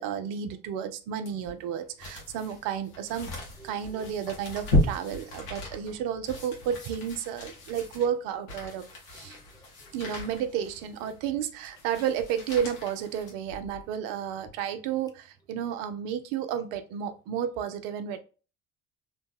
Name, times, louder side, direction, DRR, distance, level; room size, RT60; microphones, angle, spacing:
voice 1, 0.0-3.3 3.6-9.4 9.9-18.2, right 8 dB, 70° right, 0.5 m, -32 dB
sound 1, 1.3-13.9 14.4-14.5, left 1 dB, 70° left, 1.1 m, -35 dB
voice 2, 3.6-4.1 9.1-10.1 11.0-11.1 15.7-15.8, right 4 dB, 10° left, 0.4 m, -54 dB
2.8 x 2.1 x 3.1 m
hypercardioid pair, 55°, 36 cm